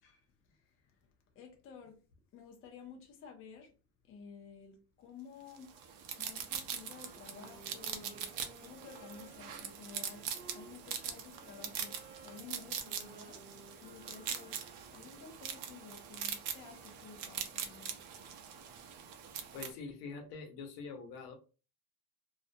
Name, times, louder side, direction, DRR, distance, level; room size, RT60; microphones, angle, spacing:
voice 1, 1.4-2.0 2.3-3.7 4.1-5.7 6.2-8.3 8.6-12.0 12.2-13.4 13.8-18.0, left 6 dB, 30° left, 0.4 m, -53 dB
sound 1, 5.6-19.7, right 8 dB, 60° right, 0.5 m, -42 dB
Wind instrument woodwind instrument, 6.9-15.2, right 4 dB, 40° right, 0.8 m, -57 dB
voice 2, 19.5-21.4, left 4 dB, 75° left, 0.8 m, -45 dB
2.4 x 2.1 x 2.6 m
cardioid pair, 160°, 46 cm